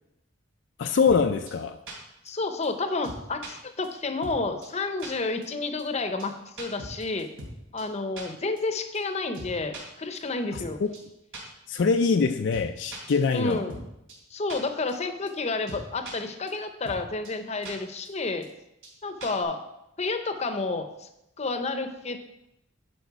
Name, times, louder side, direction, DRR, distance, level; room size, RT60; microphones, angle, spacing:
voice 1, 0.8-1.8 10.5-10.9 11.7-13.6, left 5 dB, 65° left, 6 dB, 0.4 m, -24 dB
sound 1, 1.1-1.2 1.5-1.6 1.9-2.0 2.3-2.4 2.6-2.7 3.0-3.5 3.8-3.9 4.2-4.4 4.6-4.7 5.0-5.1 5.4-5.5 5.8-5.9 6.2-6.3 6.6-7.5 7.8-7.9 8.2-8.3 8.6-8.7 8.9-9.0 9.3-9.8 10.1-10.2 10.5-10.7 10.9-11.0 11.3-11.4 11.7-11.8 12.1-12.2 12.5-12.6 12.9-13.8 14.1-14.2 14.5-14.6 14.9-15.0 15.3-15.4 15.7-16.1 16.5-16.6 16.8-17.0 17.2-17.3 17.6-17.7 18.0-18.1 18.4-18.5 18.8-18.9 19.2-19.4, right 2 dB, 80° right, 3.3 m, -40 dB
voice 2, 2.2-7.3 7.7-10.8 13.3-13.8 14.3-18.5 19.0-19.6 20.0-21.1 21.4-22.2, left 3 dB, 35° left, 7 dB, 0.7 m, -30 dB
10.5 x 5.2 x 4.7 m, 0.86 s
head